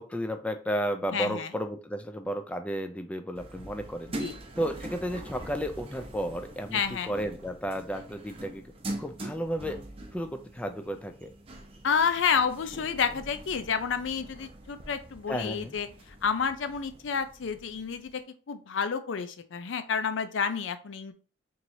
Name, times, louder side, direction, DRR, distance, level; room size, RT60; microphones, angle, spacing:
voice 1, 0.0-4.1 4.6-8.6 9.0-9.8 10.1-11.3 15.3-15.7, equal, 5° left, 6 dB, 0.3 m, -33 dB
voice 2, 1.1-1.5 4.2-4.3 6.7-7.1 11.8-15.9 16.2-18.1 18.5-21.1, left 6 dB, 85° left, 10 dB, 0.5 m, -29 dB
sound 1, 3.3-18.1, right 1 dB, 30° right, 0.6 m, -43 dB
4.5 x 3.0 x 2.6 m, 0.37 s
head